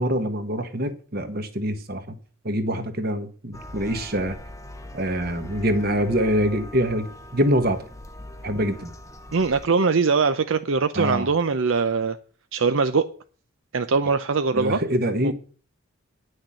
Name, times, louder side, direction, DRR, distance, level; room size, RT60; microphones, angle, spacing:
voice 1, 0.0-2.0 2.4-4.3 4.9-7.1 7.3-7.8 8.4-8.9 10.9-11.3 14.5-15.3, equal, 50° right, 1.5 m, -24 dB
sound 1, 3.5-9.7, left 1 dB, 15° left, 0.8 m, -41 dB
voice 2, 9.3-12.2 12.5-13.1 13.7-14.8 15.2-15.3, right 4 dB, 70° right, 0.6 m, -22 dB
10.0 x 6.5 x 7.7 m
head